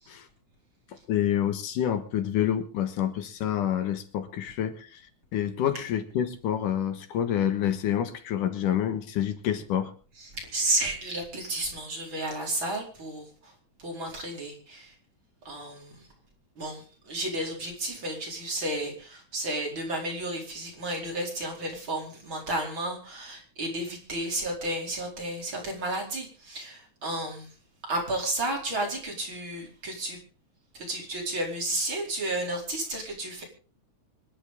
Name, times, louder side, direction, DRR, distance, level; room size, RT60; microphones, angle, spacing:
voice 1, 1.1-5.0 5.3-9.9, left 10 dB, 85° left, 9 dB, 3.1 m, -28 dB
voice 2, 10.2-13.5 13.8-14.9 15.5-16.0 16.6-27.5 27.9-30.2 30.7-33.4, right 1 dB, 40° right, 0 dB, 5.2 m, -32 dB
25.5 x 11.5 x 3.7 m, 0.37 s
omnidirectional pair, 3.6 m